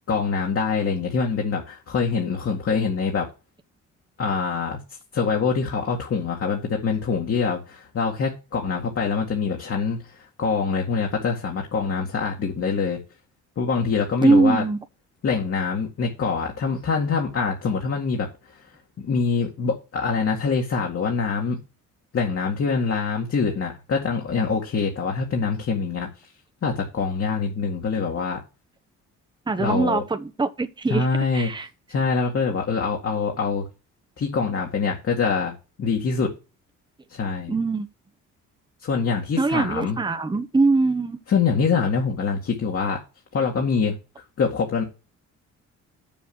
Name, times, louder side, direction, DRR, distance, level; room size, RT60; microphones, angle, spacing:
voice 1, 0.1-3.3 4.2-4.8 5.1-13.0 13.6-14.6 15.2-18.3 19.0-21.6 22.1-26.1 26.6-28.4 29.6-30.0 30.9-31.5 31.9-33.7 34.2-36.3 37.1-37.5 38.8-40.0 41.3-43.0 43.3-44.0 44.4-44.8, left 5 dB, 50° left, 2.1 m, -24 dB
voice 2, 14.2-14.8 29.5-31.1 31.3-31.7 37.5-37.9 39.4-41.2, right 3 dB, 15° right, 1.0 m, -22 dB
7.2 x 7.1 x 6.1 m
cardioid pair, 90°, 30 cm